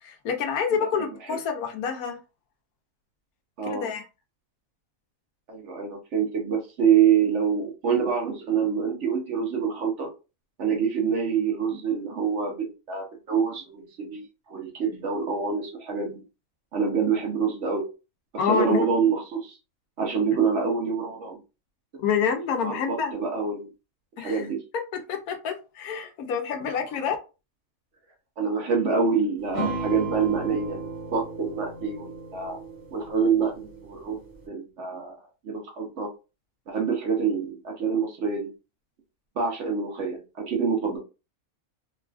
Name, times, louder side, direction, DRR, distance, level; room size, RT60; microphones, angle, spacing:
voice 1, 0.0-2.2 3.7-4.0 18.4-18.9 22.0-23.1 24.2-24.5 25.1-27.1, left 7 dB, 80° left, 1.1 m, -27 dB
voice 2, 5.5-10.1 10.6-16.2 16.7-17.9 18.4-19.6 20.0-21.4 22.6-23.7 24.2-24.6 28.4-32.6 32.9-34.2 34.5-35.2 35.4-36.1 36.7-38.5 39.4-41.0, right 6 dB, 60° right, 0.9 m, -26 dB
sound 1, 29.5-34.4, right 3 dB, 25° right, 0.9 m, -35 dB
3.1 x 2.3 x 2.3 m
omnidirectional pair, 1.5 m